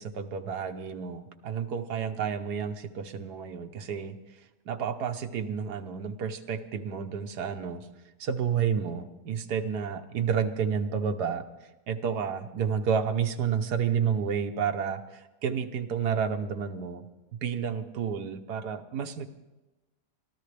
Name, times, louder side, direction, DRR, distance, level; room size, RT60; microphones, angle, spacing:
voice 1, 0.0-4.2 4.7-7.9 8.2-11.5 11.9-17.0 17.3-19.3, right 7 dB, 70° right, 6 dB, 1.5 m, -30 dB
24.5 x 13.5 x 3.4 m, 1.1 s
omnidirectional pair, 1.8 m